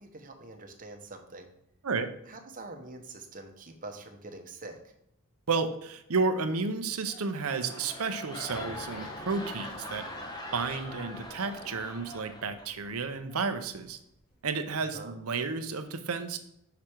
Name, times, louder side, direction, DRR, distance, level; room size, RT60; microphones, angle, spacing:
voice 1, 0.0-1.5 2.3-4.9 14.8-15.1, right 2 dB, 35° right, 5 dB, 0.9 m, -45 dB
voice 2, 5.5-10.1 10.5-14.0 14.4-16.4, right 4 dB, 70° right, 9 dB, 0.7 m, -32 dB
sound 1, 7.0-12.9 13.3-13.6, left 1 dB, 20° left, 0.9 m, -43 dB
sound 2, 8.0-14.7, equal, 85° left, 2.4 m, -51 dB
5.9 x 4.9 x 4.4 m, 0.80 s
head